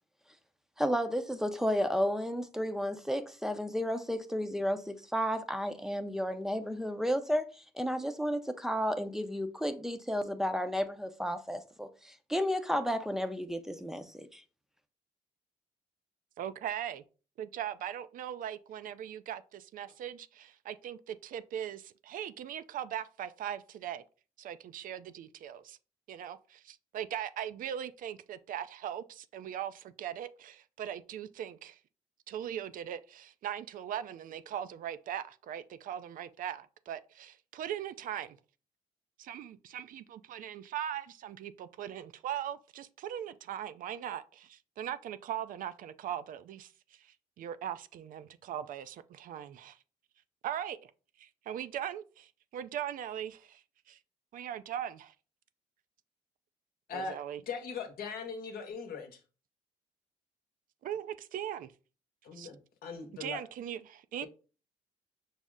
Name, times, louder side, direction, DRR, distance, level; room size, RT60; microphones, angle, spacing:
voice 1, 0.8-14.4, equal, 5° right, 0.5 m, -32 dB
voice 2, 16.4-17.0 17.4-24.0 24.4-25.8 26.1-31.8 32.3-38.4 39.2-49.8 50.4-50.8 51.2-54.0 54.3-55.1 56.9-57.4 60.8-61.7 62.3-62.5 63.2-64.3, right 10 dB, 60° right, 0.4 m, -40 dB
voice 3, 57.5-59.2 62.2-63.4, left 5 dB, 70° left, 0.9 m, -40 dB
5.4 x 2.0 x 3.6 m
supercardioid pair, 65°, 16 cm